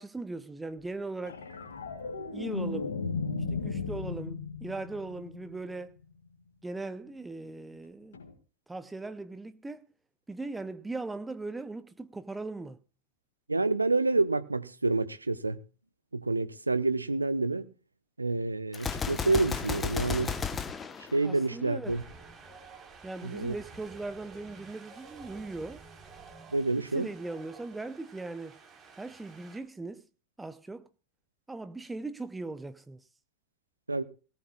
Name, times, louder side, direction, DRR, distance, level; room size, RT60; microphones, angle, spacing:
voice 1, 0.0-1.4 2.3-3.0 3.5-5.9 6.6-8.2 8.7-9.8 10.3-12.8 21.2-22.0 23.0-25.8 26.8-28.6 29.0-30.0 30.4-30.9 31.5-33.0, right 3 dB, 10° right, 0.7 m, -39 dB
sound 1, 1.2-5.7 8.1-8.3, left 4 dB, 65° left, 2.3 m, -35 dB
voice 2, 13.5-15.6 16.1-17.6 18.2-20.4 21.1-22.0 23.2-23.6 26.5-27.1 33.9-34.0, right 3 dB, 80° right, 0.8 m, -28 dB
Gunshot gunfire, 18.7-21.8, left 6 dB, 20° left, 1.1 m, -34 dB
Wind, 21.8-29.6, right 4 dB, 25° right, 4.2 m, -51 dB
19.0 x 18.0 x 2.4 m
figure-of-eight pair, 90°, 0 cm